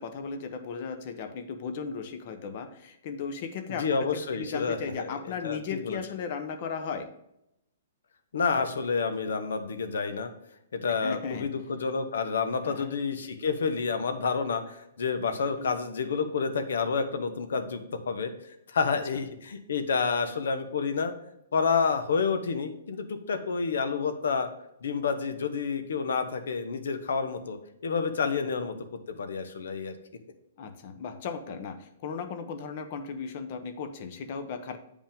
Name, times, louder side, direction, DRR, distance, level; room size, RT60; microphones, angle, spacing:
voice 1, 0.0-7.1 11.0-11.5 12.6-12.9 15.6-15.7 19.1-19.2 30.6-34.8, left 5 dB, 35° left, 9 dB, 0.8 m, -36 dB
voice 2, 3.7-5.6 5.8-6.0 8.3-10.3 10.7-18.3 18.7-21.1 21.5-24.5 24.8-27.6 27.8-28.8 29.1-30.0, left 5 dB, 75° left, 8 dB, 1.1 m, -29 dB
9.0 x 5.2 x 3.5 m, 0.81 s
hypercardioid pair, 170°, 0 cm